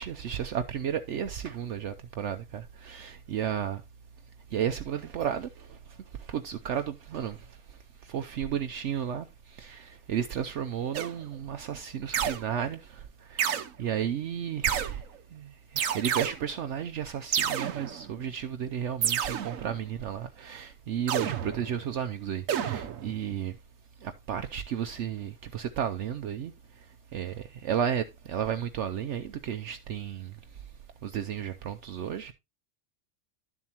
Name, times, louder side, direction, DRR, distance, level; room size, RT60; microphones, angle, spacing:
voice 1, 0.0-3.8 4.5-5.8 6.2-7.6 8.0-15.0 15.3-23.6 24.0-26.5 27.1-30.3 31.0-32.3, right 9 dB, 65° right, 0.9 m, -33 dB
sound 1, 10.9-11.4 12.1-12.7 13.4-13.7 14.6-15.2 15.8-16.6 17.3-18.3 19.0-19.9 21.1-22.0 22.5-23.4, right 9 dB, 85° right, 1.2 m, -30 dB
11.0 x 7.3 x 2.9 m
omnidirectional pair, 1.3 m